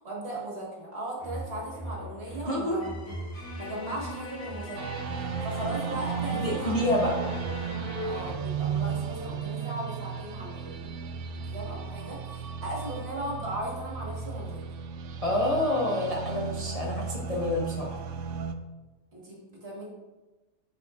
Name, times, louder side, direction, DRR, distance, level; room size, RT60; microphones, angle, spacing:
voice 1, 0.0-5.0 5.4-6.8 7.2-7.3 8.0-10.9 11.3-14.6 19.1-19.9, right 1 dB, 45° right, -4 dB, 1.9 m, -37 dB
sound 1, 1.2-8.3, equal, 80° left, 2.2 m, -39 dB
voice 2, 2.5-2.8 6.4-7.1 15.2-18.0, left 1 dB, 30° left, -4 dB, 0.7 m, -28 dB
sound 2, 4.8-18.6, right 6 dB, 70° right, 0.7 m, -35 dB
9.6 x 5.0 x 2.5 m, 1.2 s
omnidirectional pair, 1.6 m